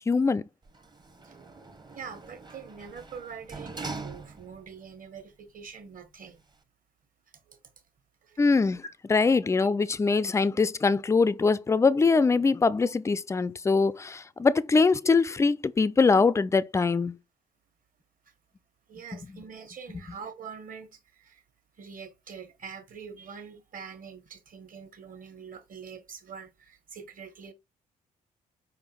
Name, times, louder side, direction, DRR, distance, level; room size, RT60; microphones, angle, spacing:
voice 1, 0.1-0.5 8.4-8.8 9.1-17.2, left 4 dB, 15° left, 0.4 m, -23 dB
Sliding door, 0.6-4.8 5.2-5.3, right 3 dB, 20° right, 0.9 m, -42 dB
voice 2, 1.9-6.4 7.4-7.6 8.2-8.4 18.9-21.4 21.8-27.5, right 6 dB, 40° right, 1.4 m, -44 dB
4.9 x 3.5 x 3.0 m
figure-of-eight pair, 45°, 21 cm